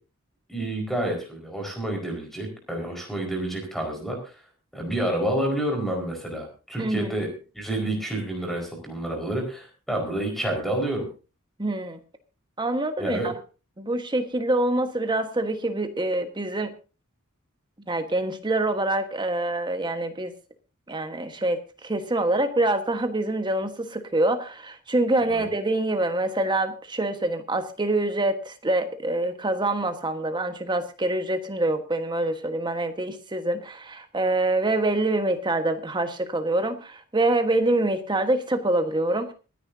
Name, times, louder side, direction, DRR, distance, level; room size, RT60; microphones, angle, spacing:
voice 1, 0.5-4.3 4.7-7.3 7.5-11.1 13.0-13.3 25.3-25.4, right 1 dB, ahead, 1 dB, 4.8 m, -29 dB
voice 2, 6.8-7.2 11.6-12.0 12.6-13.3 13.8-16.7 17.9-20.3 20.9-39.3, right 2 dB, 20° right, 7 dB, 1.3 m, -25 dB
25.5 x 10.0 x 2.7 m, 0.33 s
head